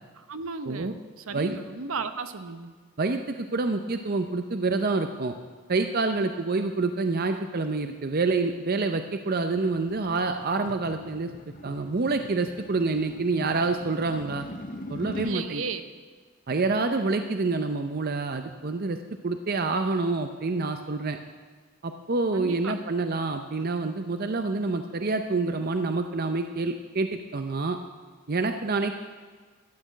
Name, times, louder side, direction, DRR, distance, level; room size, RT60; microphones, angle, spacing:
voice 1, 0.3-2.7 15.1-15.8 22.3-22.7, right 4 dB, 65° right, 10 dB, 0.9 m, -35 dB
voice 2, 3.0-5.3 5.7-11.3 11.6-14.5 14.9-15.6 16.5-19.0 19.2-21.2 21.8-27.8 28.3-28.9, right 3 dB, 45° right, 7 dB, 0.6 m, -27 dB
sound 1, 9.4-15.4, left 1 dB, 35° left, 0.9 m, -41 dB
13.0 x 8.6 x 9.2 m, 1.5 s
head